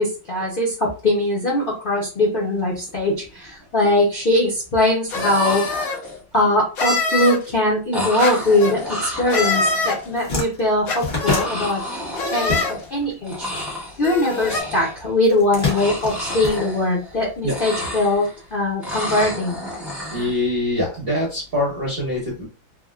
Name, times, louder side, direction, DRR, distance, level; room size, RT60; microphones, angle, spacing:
voice 1, 0.0-6.0 6.3-11.8 12.3-12.6 12.9-13.5 14.0-19.6, left 1 dB, 80° left, -4 dB, 0.4 m, -21 dB
sound 1, 2.7-2.9 3.2-3.8 4.9-5.0 5.1-6.3 7.9-10.1 11.2-13.0 13.2-14.0 14.3-15.1 15.5-17.2 17.4-18.4 18.8-20.4, left 1 dB, ahead, 0.6 m, -31 dB
sound 2, 5.1-6.0 6.8-7.4 8.2-8.7 9.3-10.0 10.9-11.5 12.2-12.7 13.5-13.6 14.0-14.6, left 3 dB, 55° left, 1.2 m, -24 dB
sound 3, 9.7-9.8 10.0-13.1 13.4-14.6 15.2-17.2, left 3 dB, 35° left, 0.8 m, -27 dB
voice 2, 20.1-22.5, left 1 dB, 55° right, -3 dB, 0.6 m, -24 dB
3.5 x 2.2 x 2.3 m, 0.35 s
omnidirectional pair, 2.1 m